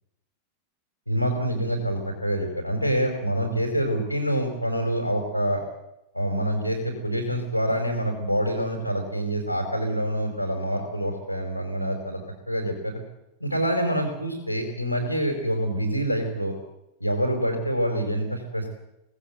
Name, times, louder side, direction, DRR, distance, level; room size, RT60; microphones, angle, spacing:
voice 1, 1.1-5.6 6.1-12.2 12.5-12.9 13.4-16.5 17.0-18.7, right 1 dB, 90° left, 2 dB, 4.6 m, -26 dB
25.0 x 18.5 x 8.0 m, 0.86 s
figure-of-eight pair, 90°, 0 cm